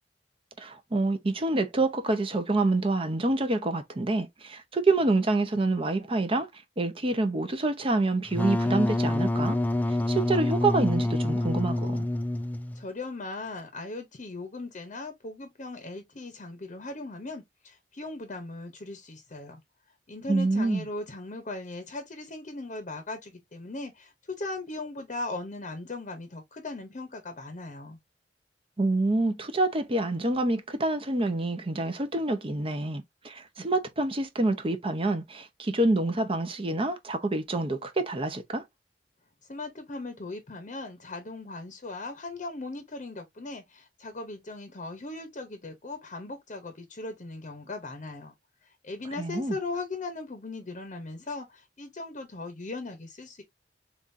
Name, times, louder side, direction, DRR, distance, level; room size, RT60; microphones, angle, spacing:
voice 1, 0.6-6.5 6.8-9.6 10.1-12.0 20.3-20.9 28.8-38.6 49.2-49.6, right 2 dB, 30° right, 0.7 m, -27 dB
Wind instrument woodwind instrument, 8.3-12.8, left 1 dB, 10° left, 0.3 m, -27 dB
voice 2, 12.7-19.6 20.1-28.0 39.5-48.3 48.6-53.4, left 2 dB, 45° left, 0.8 m, -38 dB
7.0 x 2.5 x 2.6 m
head